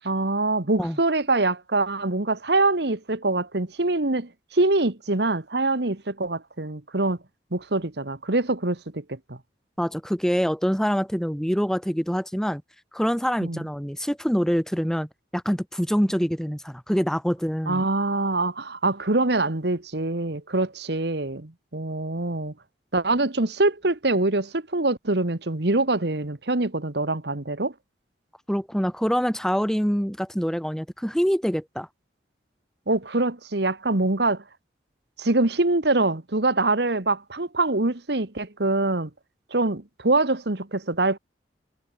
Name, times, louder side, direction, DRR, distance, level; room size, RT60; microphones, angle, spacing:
voice 1, 0.0-7.2 7.5-9.4 13.4-13.6 17.7-22.5 22.9-27.7 32.9-34.4 35.2-39.1 39.5-41.2, right 2 dB, 65° right, 1.6 m, -24 dB
voice 2, 9.8-12.6 12.9-17.8 28.5-31.9, equal, 5° left, 2.5 m, -25 dB
head